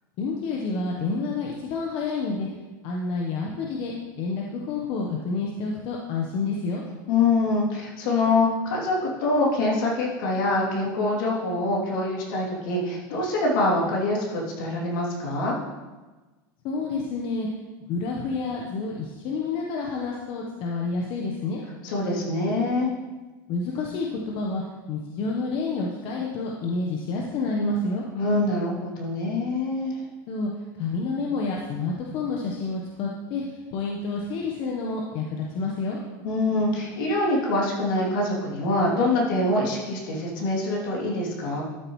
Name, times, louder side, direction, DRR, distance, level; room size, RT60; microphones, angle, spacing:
voice 1, 0.2-2.5 2.8-6.8 16.6-17.5 17.9-21.6 23.5-24.6 24.9-28.0 30.3-30.5 30.8-36.0, left 3 dB, 50° left, -1 dB, 1.1 m, -29 dB
voice 2, 7.1-15.6 21.8-22.9 28.1-30.0 36.2-41.6, left 2 dB, 75° left, -4 dB, 3.0 m, -25 dB
12.5 x 6.8 x 3.2 m, 1.2 s
supercardioid pair, 130°, 11 cm